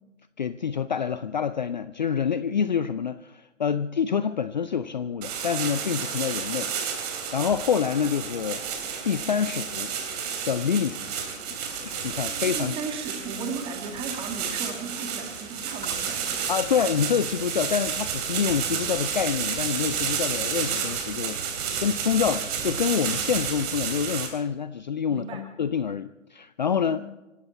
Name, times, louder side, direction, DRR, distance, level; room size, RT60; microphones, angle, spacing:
voice 1, 0.4-6.7 7.0-8.6 9.0-10.0 10.4-11.1 11.8-12.7 16.5-27.0, left 7 dB, 35° left, 13 dB, 0.5 m, -27 dB
sound 1, 5.2-24.3, right 7 dB, 30° right, 3.4 m, -31 dB
voice 2, 12.3-16.5 25.1-25.5 26.9-27.0, right 4 dB, 15° right, 5 dB, 2.1 m, -36 dB
25.0 x 13.0 x 4.3 m, 1.0 s
figure-of-eight pair, 135°, 39 cm